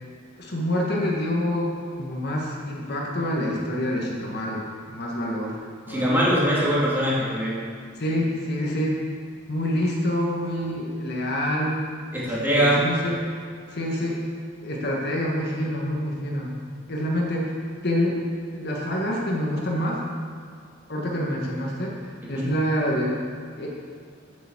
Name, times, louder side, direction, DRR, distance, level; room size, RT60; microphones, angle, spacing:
voice 1, 0.4-5.6 5.9-6.1 8.0-9.0 9.5-13.2 13.7-14.2 14.6-16.5 16.9-17.6 17.8-18.2 18.5-20.0 20.9-23.2 23.6-23.7, equal, 55° left, -2 dB, 1.7 m, -27 dB
voice 2, 5.9-7.6 12.1-12.8 22.3-22.5, equal, 10° right, -7 dB, 2.6 m, -22 dB
8.3 x 7.2 x 7.3 m, 2.2 s
head